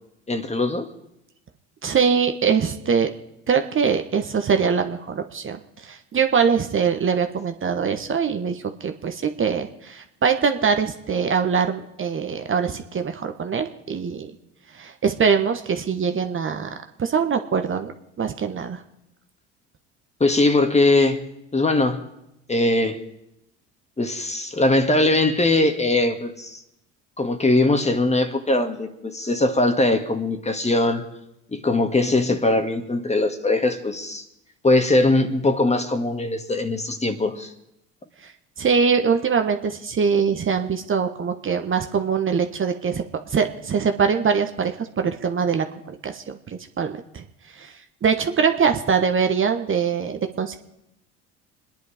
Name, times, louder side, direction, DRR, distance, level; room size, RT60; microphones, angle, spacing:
voice 1, 0.3-0.9 20.2-21.2 21.5-22.0 22.5-23.0 24.0-26.6 27.2-31.0 31.5-34.2 34.6-37.5, left 2 dB, 20° left, 7 dB, 1.9 m, -21 dB
voice 2, 1.8-3.1 3.5-14.3 14.7-16.7 17.0-17.9 18.2-18.8 38.2-38.3 38.6-47.2 47.5-47.7 48.0-50.6, right 6 dB, 35° right, 6 dB, 1.3 m, -23 dB
27.0 x 10.5 x 5.0 m, 0.83 s
hypercardioid pair, 65°, 36 cm